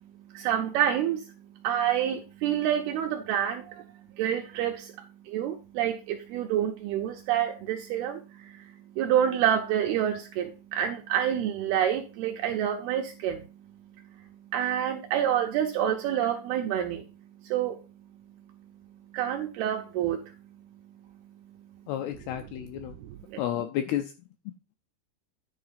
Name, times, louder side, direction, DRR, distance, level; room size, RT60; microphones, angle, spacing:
voice 1, 0.0-21.9 23.0-23.4, right 10 dB, 80° right, 4 dB, 2.3 m, -29 dB
voice 2, 21.9-23.0 23.4-24.1 24.5-24.6, left 11 dB, 80° left, 7 dB, 2.3 m, -31 dB
10.5 x 4.1 x 5.7 m, 0.32 s
omnidirectional pair, 5.2 m